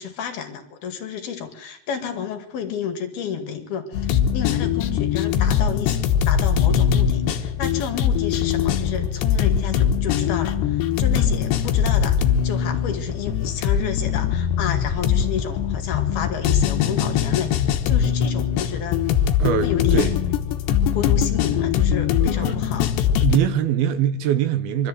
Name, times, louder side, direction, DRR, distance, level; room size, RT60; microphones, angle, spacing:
voice 1, 0.0-6.0 6.3-19.0 19.6-20.1 20.9-22.9, left 7 dB, 65° left, 3.9 m, -31 dB
sound 1, 3.9-23.4, left 8 dB, 90° left, 3.5 m, -21 dB
voice 2, 19.4-20.2 20.9-21.1 22.3-22.6 23.2-24.9, right 10 dB, 75° right, 2.7 m, -23 dB
24.0 x 14.0 x 7.9 m
omnidirectional pair, 4.8 m